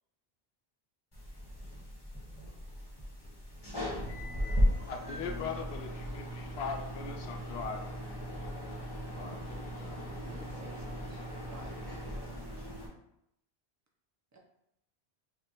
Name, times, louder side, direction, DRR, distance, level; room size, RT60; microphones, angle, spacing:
sound 1, 1.1-12.9, equal, 25° left, 1.1 m, -36 dB
voice 1, 4.9-7.9, left 5 dB, 80° left, 3 dB, 0.8 m, -39 dB
voice 2, 9.0-11.3 11.9-12.0, left 2 dB, 50° left, -5 dB, 0.8 m, -52 dB
voice 3, 10.3-12.3 12.5-12.7 14.3-14.4, right 3 dB, 20° right, -1 dB, 0.5 m, -52 dB
4.8 x 2.4 x 2.9 m, 0.79 s
omnidirectional pair, 1.1 m